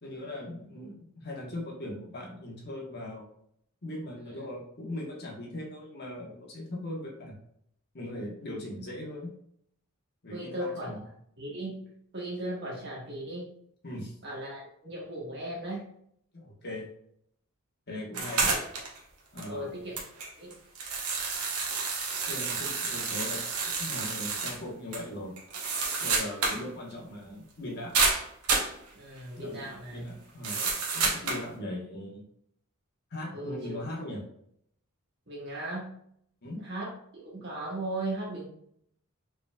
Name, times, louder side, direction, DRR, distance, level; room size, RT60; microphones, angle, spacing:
voice 1, 0.0-3.3 3.8-7.4 7.9-9.3 10.2-11.0 13.8-14.2 16.3-16.9 17.9-18.6 19.3-19.8 22.2-25.3 26.0-28.0 29.4-32.2 33.1-34.2 36.4-36.6, left 1 dB, 45° left, -2 dB, 1.2 m, -39 dB
voice 2, 10.3-10.9 11.4-11.8 12.1-13.5 14.2-15.9 19.5-20.0 20.4-20.6 28.9-30.1 33.3-33.7 35.3-35.9 36.6-38.5, right 1 dB, 50° right, -4 dB, 1.6 m, -37 dB
sound 1, 18.1-19.0 19.4-19.5 20.0-24.6 24.9-25.0 25.4-26.7 26.9-27.0 27.9-28.8 30.4-31.5, right 4 dB, 85° right, 1.0 m, -29 dB
5.0 x 3.5 x 2.3 m, 0.68 s
head